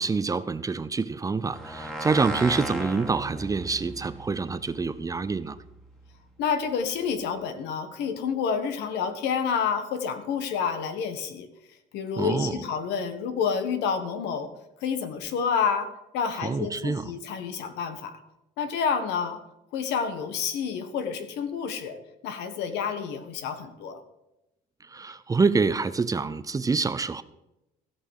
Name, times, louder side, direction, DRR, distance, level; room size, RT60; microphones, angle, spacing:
voice 1, 0.0-5.6 12.2-12.6 16.4-17.1 24.9-27.2, right 4 dB, 20° right, 14 dB, 0.6 m, -26 dB
sound 1, 1.5-6.2, right 1 dB, ahead, 1.7 m, -37 dB
voice 2, 6.4-11.5 11.9-14.5 14.8-15.9 16.1-18.2 18.6-19.4 19.7-24.0, left 6 dB, 90° left, 9 dB, 1.4 m, -29 dB
15.5 x 5.6 x 6.6 m, 0.91 s
cardioid pair, 110°, 17 cm